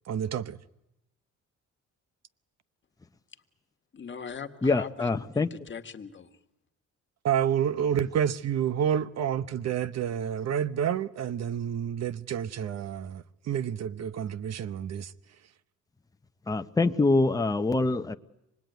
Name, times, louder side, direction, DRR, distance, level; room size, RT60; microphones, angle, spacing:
voice 1, 0.1-0.6 7.2-15.1, right 9 dB, 60° right, 0.9 m, -29 dB
voice 2, 3.9-6.3, left 6 dB, 40° left, 1.6 m, -41 dB
voice 3, 4.6-5.5 16.5-18.1, left 3 dB, 10° left, 0.8 m, -25 dB
25.5 x 20.0 x 9.3 m
cardioid pair, 90°, 30 cm